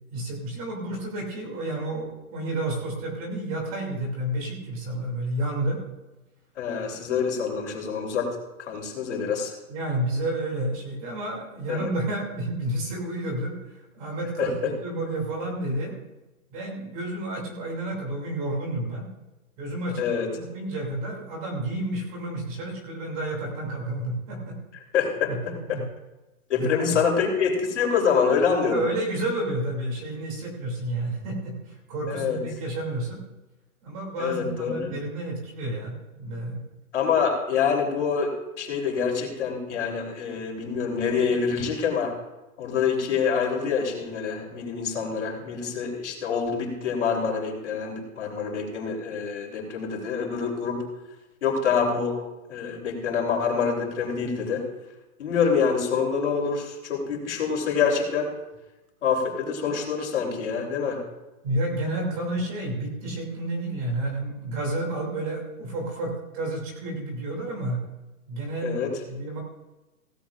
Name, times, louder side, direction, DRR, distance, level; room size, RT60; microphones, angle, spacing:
voice 1, 0.1-5.8 9.7-16.0 16.5-19.1 19.6-20.1 20.3-24.6 25.3-25.8 26.6-27.0 28.6-33.2 33.8-36.6 61.4-67.8 68.3-69.4, right 1 dB, 25° right, -1 dB, 2.8 m, -30 dB
voice 2, 6.6-8.4 8.7-9.5 11.7-11.9 14.4-14.5 20.0-20.3 24.9-25.8 26.5-28.8 32.1-32.4 34.2-34.9 36.9-42.1 42.6-50.8 51.4-52.2 52.5-54.6 55.2-58.3 59.0-61.0 68.6-68.9, left 6 dB, 55° left, 0 dB, 3.6 m, -26 dB
17.0 x 14.5 x 2.5 m, 1.0 s
hypercardioid pair, 180°, 43 cm